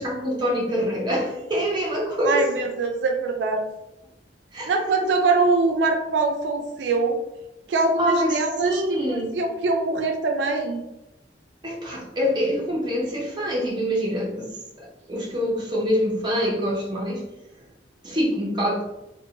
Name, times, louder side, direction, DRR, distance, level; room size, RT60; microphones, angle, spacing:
voice 1, 0.0-2.5 4.5-4.7 8.0-8.3 8.6-9.4 11.6-17.2 18.0-18.8, equal, 25° right, -3 dB, 0.6 m, -25 dB
voice 2, 2.2-3.6 4.7-7.2 7.7-8.8 9.1-10.8, right 3 dB, 80° right, 3 dB, 0.3 m, -23 dB
2.5 x 2.1 x 2.7 m, 0.93 s
head